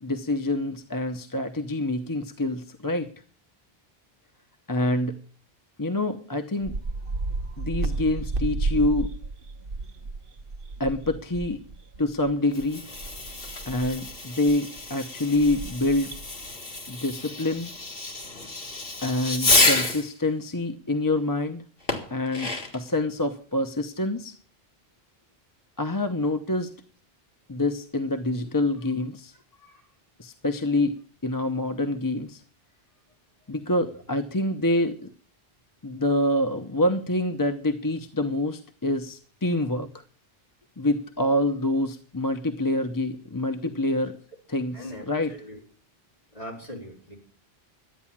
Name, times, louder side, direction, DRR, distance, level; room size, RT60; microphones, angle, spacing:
voice 1, 0.0-3.1 4.7-5.2 5.8-6.7 7.6-9.1 10.8-11.6 12.0-12.8 13.6-16.1 16.9-17.7 19.0-21.6 22.1-24.3 25.8-26.7 27.5-29.3 30.2-32.4 33.5-35.1 35.8-40.0 40.8-44.1 44.5-45.3, left 1 dB, 20° left, 8 dB, 0.7 m, -26 dB
sound 1, 6.6-14.2 14.5-16.7 17.1-17.2 17.6-17.9, right 3 dB, 60° right, 1.0 m, -33 dB
Fireworks, 12.4-20.1 21.9-22.9, left 2 dB, 65° left, 2.3 m, -28 dB
voice 2, 44.7-45.1 45.4-45.6 46.3-47.1, equal, 40° left, -1 dB, 4.7 m, -40 dB
12.5 x 9.5 x 7.2 m, 0.43 s
omnidirectional pair, 1.0 m